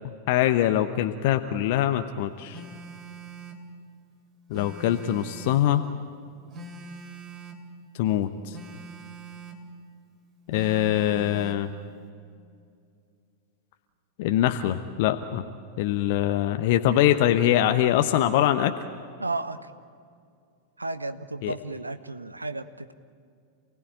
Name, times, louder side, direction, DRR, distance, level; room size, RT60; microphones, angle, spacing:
voice 1, 0.3-2.6 4.5-5.8 8.0-8.6 10.5-11.7 14.2-15.4 15.8-18.7 21.4-21.5, left 12 dB, 50° left, 8 dB, 0.9 m, -23 dB
Telephone, 2.5-3.7 4.5-5.7 6.5-7.7 8.5-9.7 10.5-11.7, right 4 dB, 35° right, 3.1 m, -43 dB
voice 2, 19.2-19.7 20.8-22.9, right 2 dB, 80° right, 11 dB, 1.0 m, -33 dB
28.5 x 18.5 x 8.8 m, 2.3 s
figure-of-eight pair, 90°, 0 cm